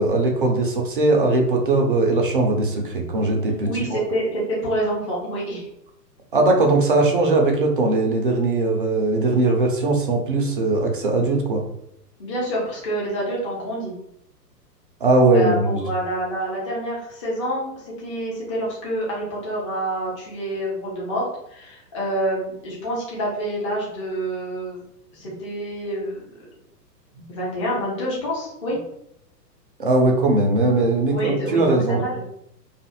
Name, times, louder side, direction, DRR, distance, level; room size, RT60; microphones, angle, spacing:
voice 1, 0.0-4.0 6.3-11.6 15.0-15.8 29.8-32.0, right 2 dB, 35° right, 1 dB, 0.4 m, -19 dB
voice 2, 3.7-5.7 12.2-13.9 15.3-24.8 25.1-26.3 27.3-28.8 31.1-32.2, right 1 dB, 20° left, -5 dB, 0.5 m, -27 dB
2.5 x 2.4 x 2.7 m, 0.76 s
figure-of-eight pair, 115°, 50 cm